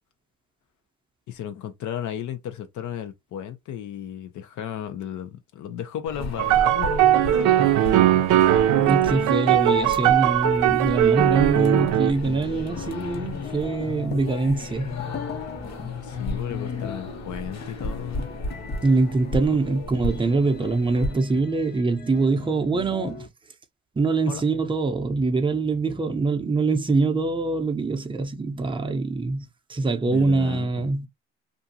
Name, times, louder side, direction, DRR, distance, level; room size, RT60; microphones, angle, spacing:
voice 1, 1.3-8.3 16.0-18.3 24.3-24.4 30.1-30.9, left 10 dB, 75° left, 0.7 m, -34 dB
sound 1, 6.1-21.1, left 1 dB, 60° left, 1.2 m, -35 dB
sound 2, 6.4-12.1, right 12 dB, 85° right, 0.5 m, -19 dB
voice 2, 8.7-15.0 18.8-23.3 24.0-31.1, right 3 dB, 15° right, 0.6 m, -24 dB
sound 3, 10.7-23.3, left 7 dB, 35° left, 0.6 m, -38 dB
2.6 x 2.4 x 2.7 m
cardioid pair, 90°, 30 cm